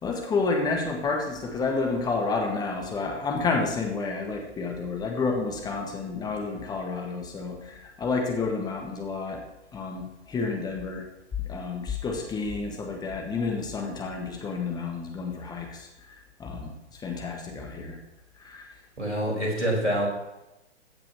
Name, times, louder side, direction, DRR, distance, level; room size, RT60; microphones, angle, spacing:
voice 1, 0.0-9.4 9.7-11.0 11.4-18.0 18.4-18.7, left 4 dB, 10° left, 1 dB, 1.6 m, -30 dB
voice 2, 19.0-20.1, right 1 dB, 85° right, -1 dB, 4.8 m, -26 dB
15.0 x 6.1 x 6.1 m, 0.94 s
figure-of-eight pair, 120°, 35 cm